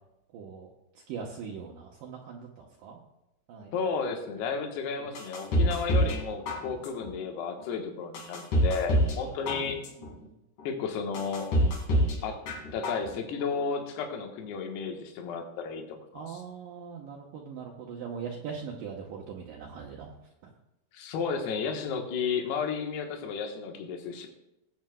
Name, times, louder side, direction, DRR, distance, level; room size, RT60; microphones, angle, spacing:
voice 1, 0.3-0.7 1.1-3.0 3.5-3.7 4.9-5.1 9.5-9.8 10.2-10.3 16.1-20.2 20.4-20.5, right 6 dB, 70° right, -1 dB, 2.3 m, -41 dB
voice 2, 3.7-9.8 10.6-11.5 12.2-12.4 12.7-16.4 20.9-24.3, left 5 dB, 80° left, 3 dB, 3.2 m, -33 dB
sound 1, 5.1-6.2 6.5-7.1 7.6-7.7 8.1-9.2 9.5-10.1 10.6-10.7 11.1-12.2 12.5-13.1 13.4-13.5, equal, 60° left, 3.3 m, -26 dB
19.0 x 8.7 x 2.3 m, 0.89 s
omnidirectional pair, 4.7 m